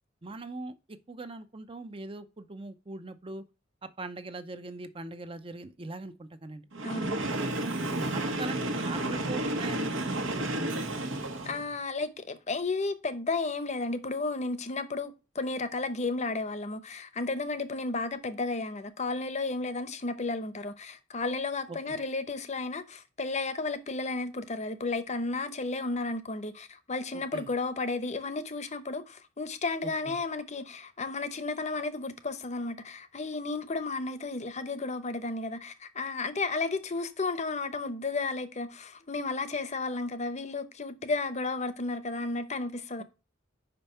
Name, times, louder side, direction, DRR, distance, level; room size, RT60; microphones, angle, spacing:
voice 1, 0.2-0.7 1.1-3.4 4.0-6.7 7.9-10.9 21.7-22.0 27.1-27.5 30.0-30.2, right 2 dB, 30° right, 0.7 m, -40 dB
Train, 6.7-11.7, right 1 dB, 75° right, 1.4 m, -32 dB
voice 2, 6.8-7.3 11.4-43.0, left 3 dB, 35° left, 0.8 m, -33 dB
5.3 x 5.3 x 5.6 m
head